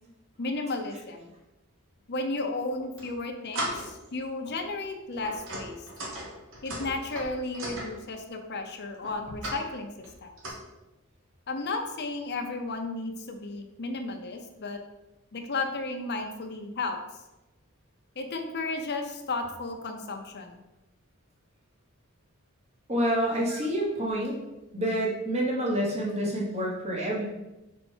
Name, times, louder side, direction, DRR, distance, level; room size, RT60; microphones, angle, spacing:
voice 1, 0.4-1.2 2.1-5.8 6.6-9.9 10.2-10.3 11.5-14.8 15.3-17.0 18.2-20.6 23.5-23.6, left 3 dB, 50° left, 4 dB, 0.8 m, -33 dB
sound 1, 2.7-3.1 3.5-4.1 4.5-4.7 5.1-7.9 9.0-9.6 10.0-10.5, right 1 dB, 65° right, 1.5 m, -37 dB
voice 2, 22.9-24.4 24.7-27.2, equal, 30° right, -3 dB, 1.3 m, -28 dB
5.4 x 4.5 x 4.5 m, 1.0 s
head